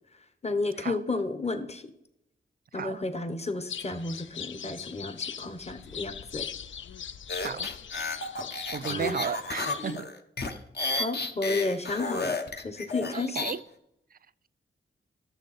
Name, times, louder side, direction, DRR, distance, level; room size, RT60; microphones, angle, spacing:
voice 1, 0.4-1.9 2.7-6.5 8.3-8.5 8.9-9.2 10.9-13.4, left 3 dB, 30° left, 1.1 m, -32 dB
sound 1, 3.7-10.0, left 8 dB, 70° left, 0.5 m, -40 dB
sound 2, 7.3-13.6, left 3 dB, 50° left, 1.1 m, -32 dB
voice 2, 8.7-10.1 13.1-13.6, right 7 dB, 45° right, 0.4 m, -34 dB
12.5 x 6.7 x 4.3 m
cardioid pair, 70°, 21 cm